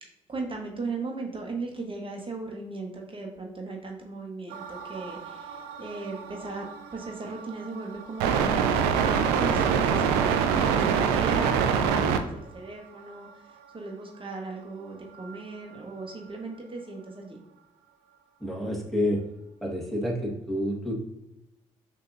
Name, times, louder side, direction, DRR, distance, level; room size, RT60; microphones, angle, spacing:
voice 1, 0.3-6.7 6.9-17.4, right 3 dB, 35° right, 1 dB, 1.0 m, -37 dB
sound 1, 4.5-12.2 15.3-15.4, right 7 dB, 80° right, 0.4 m, -26 dB
voice 2, 18.4-19.2 19.6-20.9, left 1 dB, ahead, -2 dB, 1.6 m, -28 dB
6.4 x 2.8 x 2.6 m, 0.89 s
hypercardioid pair, 40°, 16 cm